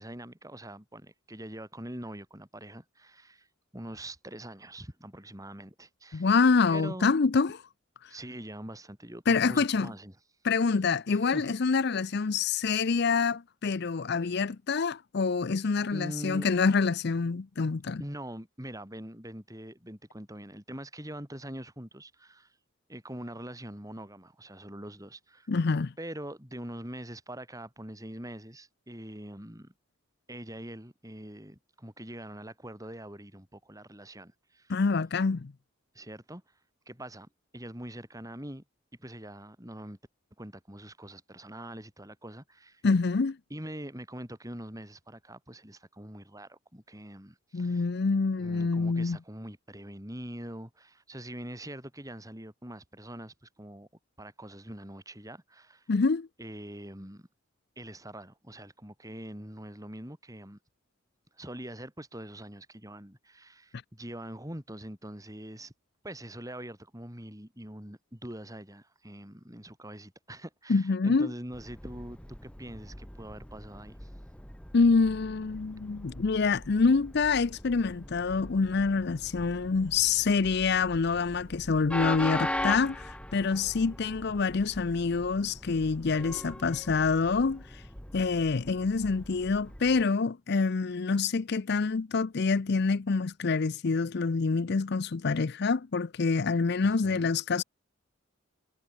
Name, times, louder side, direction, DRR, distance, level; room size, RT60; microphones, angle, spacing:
voice 1, 0.0-3.5 3.7-6.3 6.7-7.1 8.1-10.1 11.1-11.5 15.9-16.5 18.0-22.6 22.9-25.5 26.0-29.7 30.3-34.7 35.9-36.4 36.9-38.6 39.0-40.0 40.4-42.8 43.5-47.9 48.3-53.9 54.2-55.9 56.4-57.3 57.8-60.6 61.3-65.7 66.0-74.1 96.8-97.3, right 1 dB, 15° right, 6.4 m, -43 dB
voice 2, 6.1-7.6 8.0-8.1 9.3-9.9 10.4-18.0 25.5-25.9 34.7-35.5 42.8-43.4 47.5-49.2 55.9-56.3 70.7-71.3 74.7-87.8 88.1-97.6, left 4 dB, 55° left, 0.5 m, -26 dB
Train, 71.5-90.1, left 1 dB, 5° left, 1.4 m, -41 dB
head